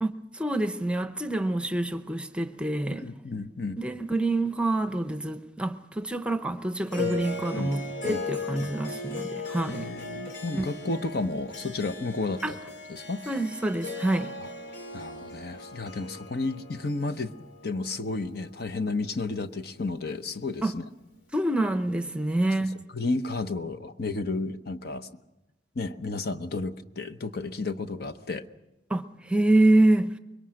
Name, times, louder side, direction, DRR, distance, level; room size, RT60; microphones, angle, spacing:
voice 1, 0.0-3.0 3.8-9.9 10.5-10.6 12.4-12.5 13.3-14.4 20.6-20.7 21.3-22.8 28.9-30.2, right 2 dB, 5° right, 0.7 m, -26 dB
voice 2, 2.9-3.8 7.0-7.2 7.5-7.7 8.0-8.2 8.6-8.7 9.7-12.6 12.9-13.2 14.4-14.5 14.9-17.3 17.6-20.8 22.9-25.1 25.7-28.4, left 3 dB, 55° left, 0.9 m, -32 dB
Harp, 6.9-19.4, left 3 dB, 75° left, 3.5 m, -38 dB
24.5 x 22.5 x 6.4 m
head